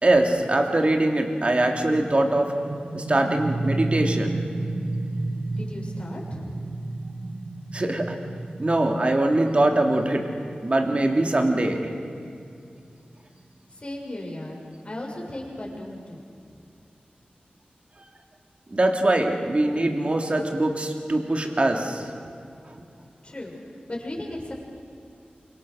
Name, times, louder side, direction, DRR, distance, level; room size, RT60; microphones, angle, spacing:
voice 1, 0.0-2.5 2.9-4.4 7.7-8.2 8.6-10.2 10.6-11.8 18.7-22.1, right 1 dB, 40° right, 2 dB, 3.1 m, -22 dB
sound 1, 1.6-13.1, right 2 dB, 55° right, 2.2 m, -32 dB
voice 2, 5.6-6.4 13.7-14.6 14.8-16.3 23.2-23.6 23.9-24.5, left 1 dB, 35° left, -2 dB, 7.3 m, -35 dB
28.5 x 26.0 x 6.6 m, 2.5 s
wide cardioid pair, 90°, 3 cm